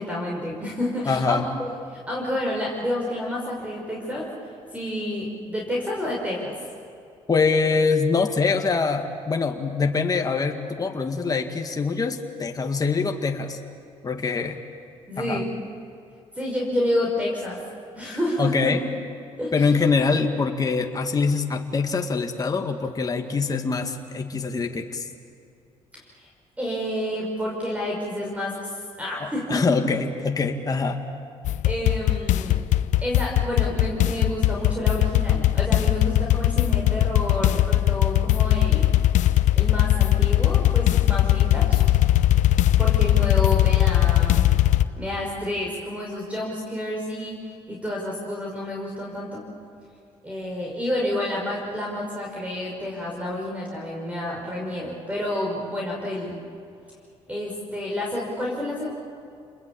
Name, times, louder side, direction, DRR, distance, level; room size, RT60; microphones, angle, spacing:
voice 1, 0.0-1.4 1.9-4.3 4.7-6.5 15.1-15.5 16.3-17.6 17.9-18.7 19.4-19.7 25.9-26.1 26.6-28.7 29.0-29.8 31.6-32.6 33.0-38.9 39.5-41.8 42.8-44.5 45.0-47.4 47.7-49.4 50.2-56.4 57.3-58.9, left 1 dB, 10° right, -2 dB, 5.7 m, -29 dB
voice 2, 1.1-1.4 7.3-13.6 14.0-14.6 15.2-15.4 18.4-18.8 19.5-25.1 29.2-31.0, left 4 dB, 30° left, 4 dB, 2.0 m, -24 dB
sound 1, 31.4-44.8, left 13 dB, 75° left, 0.8 m, -19 dB
29.0 x 21.0 x 8.6 m, 2.5 s
cardioid pair, 80°, 13 cm